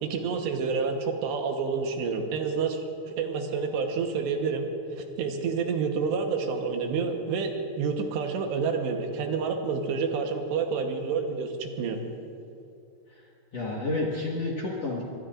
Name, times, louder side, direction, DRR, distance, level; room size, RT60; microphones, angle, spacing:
voice 1, 0.0-4.7 4.9-12.0, right 5 dB, 75° right, 3 dB, 3.3 m, -29 dB
voice 2, 13.1-15.0, left 2 dB, 60° left, -3 dB, 1.8 m, -31 dB
25.5 x 22.5 x 2.5 m, 2.6 s
omnidirectional pair, 5.1 m